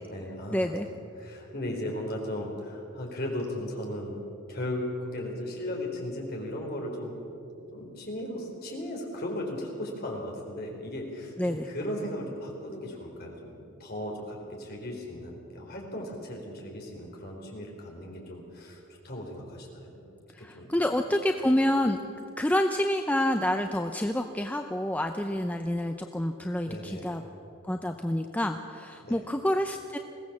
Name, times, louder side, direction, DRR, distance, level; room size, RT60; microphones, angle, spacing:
voice 1, 0.0-4.2 4.5-7.2 7.7-20.0 20.4-20.9 21.4-21.5 26.6-27.3 29.0-29.2, left 1 dB, 45° left, 0 dB, 4.0 m, -37 dB
voice 2, 0.5-0.9 11.4-11.7 20.4-22.0 22.4-27.2 27.6-30.0, left 1 dB, 5° left, 5 dB, 0.5 m, -28 dB
21.5 x 16.5 x 7.3 m, 2.8 s
head